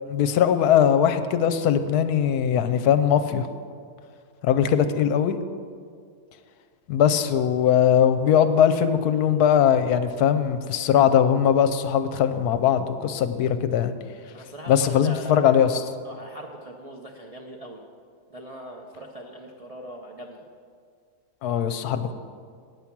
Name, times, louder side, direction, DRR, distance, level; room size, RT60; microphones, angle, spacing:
voice 1, 0.1-3.5 4.4-5.4 6.9-13.9 14.7-15.8 21.4-22.1, left 9 dB, 75° left, 10 dB, 1.1 m, -20 dB
voice 2, 14.3-15.6 16.0-17.8 18.3-20.4, equal, 45° right, -1 dB, 0.4 m, -40 dB
8.9 x 8.4 x 5.9 m, 2.1 s
omnidirectional pair, 1.7 m